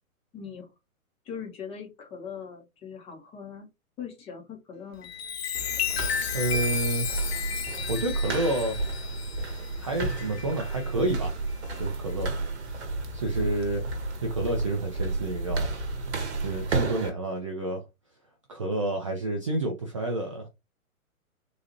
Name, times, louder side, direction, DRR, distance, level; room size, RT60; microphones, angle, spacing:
voice 1, 0.3-0.7 1.2-3.7 4.0-5.1 5.8-5.9, left 7 dB, 15° left, 0.8 m, -40 dB
Chime, 4.9-10.9 11.5-11.8, left 7 dB, 45° left, 0.6 m, -33 dB
sound 1, 5.5-17.1, right 3 dB, 50° right, 1.0 m, -32 dB
voice 2, 6.3-7.1 7.9-8.8 9.8-11.3 11.8-12.3 12.7-13.9 14.2-15.7 16.4-17.8 18.5-20.5, right 2 dB, 25° right, 0.4 m, -29 dB
3.9 x 2.4 x 2.8 m
figure-of-eight pair, 115°, 43 cm